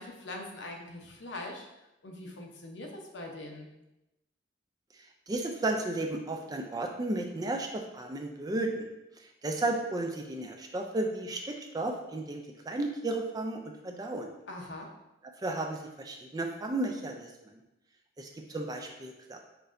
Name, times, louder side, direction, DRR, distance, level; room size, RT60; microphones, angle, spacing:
voice 1, 0.0-1.7 2.0-3.7 14.5-14.9, left 2 dB, 75° left, 1 dB, 0.8 m, -42 dB
voice 2, 5.3-8.9 9.4-14.3 15.4-17.3 18.2-19.4, right 2 dB, 20° right, 3 dB, 0.4 m, -33 dB
5.9 x 2.7 x 2.5 m, 0.93 s
head